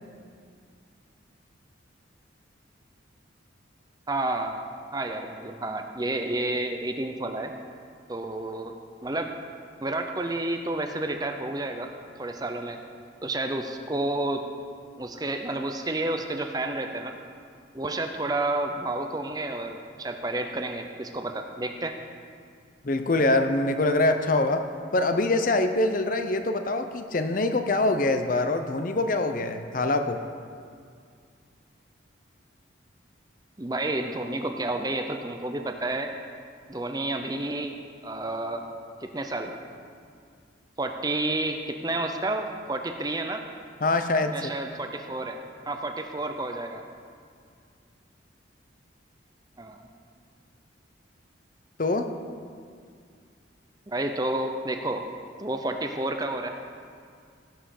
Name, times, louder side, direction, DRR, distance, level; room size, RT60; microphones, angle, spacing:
voice 1, 4.1-4.6 4.9-7.5 8.1-8.7 9.0-9.3 9.8-12.8 13.2-14.5 15.0-17.2 17.7-22.0 33.6-36.1 36.7-37.8 38.0-38.7 39.0-39.5 40.8-43.4 44.3-45.4 45.7-46.8 49.6-49.9 53.9-55.0 55.4-56.5, right 2 dB, 20° right, 5 dB, 0.6 m, -30 dB
voice 2, 22.8-24.6 24.9-30.2 43.8-44.4 51.8-52.1, left 2 dB, 45° left, 7 dB, 0.6 m, -24 dB
16.5 x 5.7 x 6.5 m, 2.2 s
head